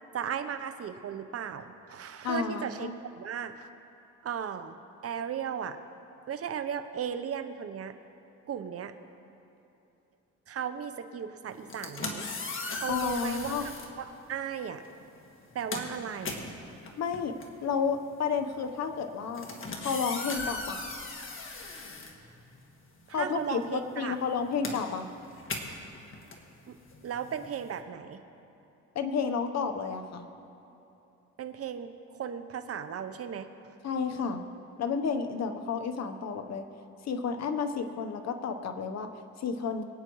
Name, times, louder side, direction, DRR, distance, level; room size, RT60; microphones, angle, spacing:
voice 1, 0.1-3.7 4.2-4.8 5.0-5.8 6.3-7.9 8.5-8.9 10.5-12.3 12.8-13.7 14.0-14.8 15.5-16.5 23.1-24.2 26.7-26.8 27.0-28.2 31.4-33.5, right 8 dB, 50° right, 9 dB, 0.9 m, -36 dB
voice 2, 2.2-2.9 12.9-13.7 17.0-17.3 17.6-19.5 19.8-20.8 23.1-25.1 28.9-30.3 33.8-34.4 34.8-36.6 37.0-39.1 39.4-39.9, left 6 dB, 60° left, 7 dB, 1.0 m, -31 dB
sound 1, 11.6-13.9 14.8-15.0 15.3-22.9 23.1-27.8, left 3 dB, 45° left, 1.7 m, -39 dB
23.5 x 9.0 x 3.1 m, 2.9 s
cardioid pair, 90°, 30 cm